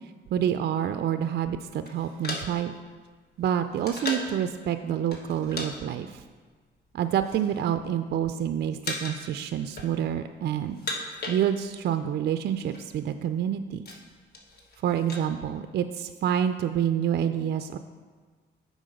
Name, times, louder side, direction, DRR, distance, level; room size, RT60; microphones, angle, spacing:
voice 1, 0.3-2.7 3.4-6.2 6.9-10.8 11.3-13.8 14.8-17.8, right 9 dB, 55° right, 9 dB, 0.4 m, -28 dB
sound 1, 1.8-4.4 5.1-5.7 6.0-6.2 6.9-7.6 7.9-8.4 8.8-9.3 9.6-10.3 10.6-11.9 12.2-12.3 12.5-12.8 13.3-15.3, left 2 dB, 50° left, 1.3 m, -37 dB
7.6 x 5.0 x 5.1 m, 1.5 s
cardioid pair, 90°, 20 cm